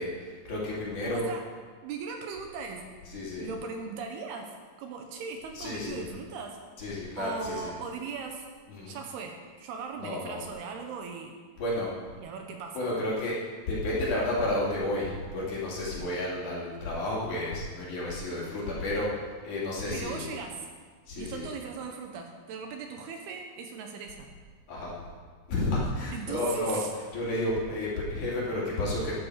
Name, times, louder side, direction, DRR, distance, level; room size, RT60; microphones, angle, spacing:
voice 1, 0.0-1.2 3.1-3.5 5.6-6.0 6.8-7.8 8.7-8.9 10.0-10.4 11.6-11.9 12.7-13.4 13.7-19.1 19.4-20.3 21.1-21.5 24.7-25.0 25.5-26.8 27.1-29.1, left 1 dB, 50° left, -6 dB, 3.8 m, -31 dB
voice 2, 1.1-1.4 1.8-2.9 3.4-6.6 7.2-8.5 8.9-11.4 12.2-12.9 19.9-20.7 21.2-24.3 26.1-26.9, right 5 dB, 75° right, 3 dB, 2.8 m, -38 dB
13.0 x 11.0 x 4.9 m, 1.6 s
omnidirectional pair, 5.0 m